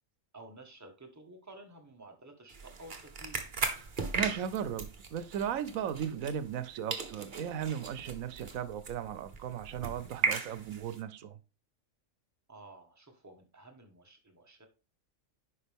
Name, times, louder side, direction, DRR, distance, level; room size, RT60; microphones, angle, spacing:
voice 1, 0.3-3.4 12.5-14.7, right 1 dB, 15° right, 1.4 m, -52 dB
sound 1, 2.5-6.6 6.9-11.0, right 4 dB, 40° right, 1.1 m, -37 dB
voice 2, 4.1-11.3, right 9 dB, 90° right, 1.1 m, -36 dB
10.0 x 5.3 x 3.5 m
omnidirectional pair, 1.4 m